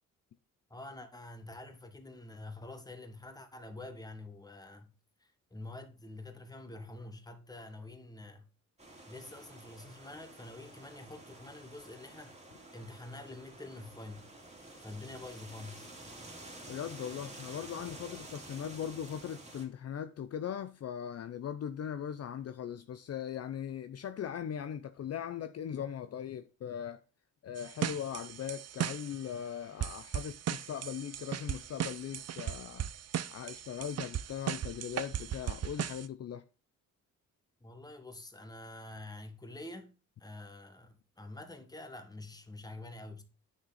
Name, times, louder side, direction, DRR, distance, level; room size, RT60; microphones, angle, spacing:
voice 1, 0.7-4.9 5.2-8.5 9.0-12.4 12.7-14.3 14.8-15.9 37.6-39.9 40.2-43.2, left 2 dB, 10° left, 1.6 m, -47 dB
sound 1, 8.8-19.7, right 2 dB, 20° right, 2.5 m, -50 dB
voice 2, 16.7-27.0 27.4-32.9 33.3-36.4, left 9 dB, 50° left, 0.6 m, -39 dB
sound 2, 27.6-29.3 29.8-36.1, right 10 dB, 50° right, 0.6 m, -37 dB
9.6 x 6.2 x 4.1 m
cardioid pair, 115°, 32 cm